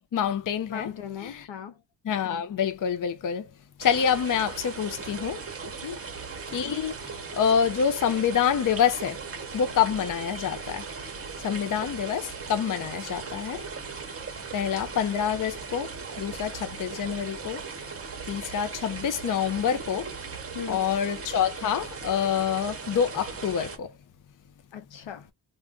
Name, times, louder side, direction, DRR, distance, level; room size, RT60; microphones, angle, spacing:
voice 1, 0.0-0.9 1.2-1.5 2.0-3.5 3.8-5.4 6.5-7.0 7.3-9.2 9.5-10.9 11.4-13.6 14.5-17.6 18.3-20.1 20.7-23.9, left 8 dB, 45° left, 0.6 m, -27 dB
voice 2, 0.7-1.8 5.8-6.0 20.5-20.9 24.7-25.3, left 7 dB, 85° left, 0.9 m, -38 dB
sound 1, 3.8-23.8, right 5 dB, 30° right, 0.9 m, -38 dB
2.5 x 2.4 x 3.5 m
wide cardioid pair, 105°, 43 cm